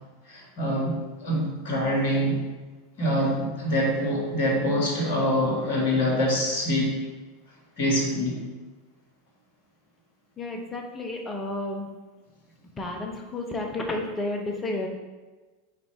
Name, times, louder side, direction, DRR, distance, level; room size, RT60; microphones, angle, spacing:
voice 1, 0.3-2.4 3.0-7.0 7.8-8.4, equal, 55° left, -2 dB, 1.8 m, -25 dB
voice 2, 10.4-11.9 12.8-14.9, left 2 dB, 20° left, 2 dB, 1.0 m, -31 dB
5.2 x 4.3 x 4.6 m, 1.2 s
figure-of-eight pair, 85°, 0 cm